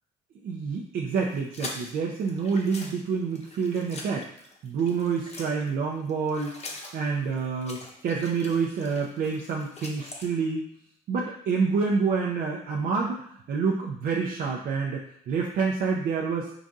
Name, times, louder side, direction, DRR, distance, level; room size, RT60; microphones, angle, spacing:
voice 1, 0.4-4.3 4.6-10.6 11.1-16.5, right 5 dB, 60° right, -2 dB, 0.6 m, -28 dB
sound 1, 1.1-5.7 6.0-10.3, left 2 dB, 40° left, 0.9 m, -43 dB
4.9 x 2.7 x 3.6 m, 0.66 s
cardioid pair, 110°, 17 cm